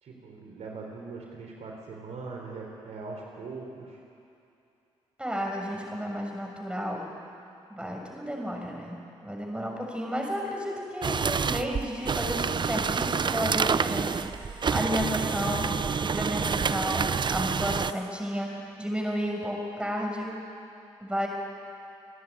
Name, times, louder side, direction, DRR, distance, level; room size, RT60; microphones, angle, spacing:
voice 1, 0.0-4.0, right 4 dB, 65° right, 0 dB, 3.7 m, -41 dB
voice 2, 5.2-7.1 7.7-14.3 14.7-18.5 18.8-20.4 21.0-21.3, equal, 10° right, 0 dB, 6.5 m, -32 dB
sound 1, 11.0-17.9, right 6 dB, 40° right, 0.6 m, -28 dB
28.0 x 10.5 x 9.6 m, 2.7 s
hypercardioid pair, 50°, 12 cm